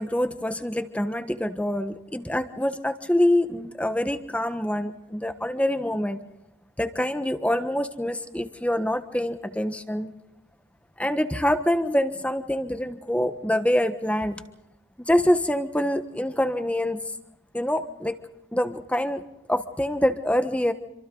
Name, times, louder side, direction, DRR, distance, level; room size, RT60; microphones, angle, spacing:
voice 1, 0.0-6.2 6.8-10.1 11.0-14.4 15.0-17.0 17.5-18.2 18.5-19.2 19.5-20.7, left 1 dB, 5° left, 9 dB, 1.3 m, -25 dB
27.5 x 26.0 x 4.0 m, 0.93 s
head